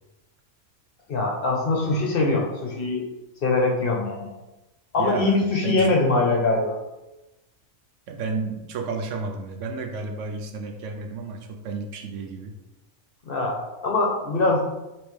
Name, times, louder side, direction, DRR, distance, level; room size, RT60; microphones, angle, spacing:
voice 1, 1.1-3.1 3.4-4.3 4.9-6.8 13.3-14.6, left 2 dB, 55° left, -1 dB, 0.8 m, -23 dB
voice 2, 5.0-5.4 5.6-6.0 8.1-12.5, right 4 dB, 70° right, 4 dB, 0.9 m, -32 dB
5.2 x 3.0 x 3.1 m, 1.0 s
omnidirectional pair, 1.4 m